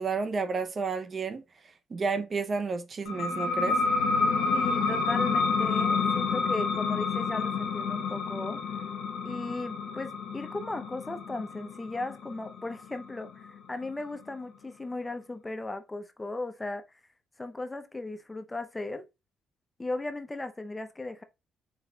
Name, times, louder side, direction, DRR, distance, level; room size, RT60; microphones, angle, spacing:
voice 1, 0.0-1.4 1.9-3.8, right 4 dB, 45° right, 0.5 m, -31 dB
sound 1, 3.0-14.3, left 4 dB, 90° left, 0.7 m, -29 dB
voice 2, 4.5-8.6 9.2-16.8 17.4-19.1 19.8-21.2, left 2 dB, 15° left, 0.6 m, -37 dB
4.5 x 4.0 x 2.2 m
cardioid pair, 90°, 0 cm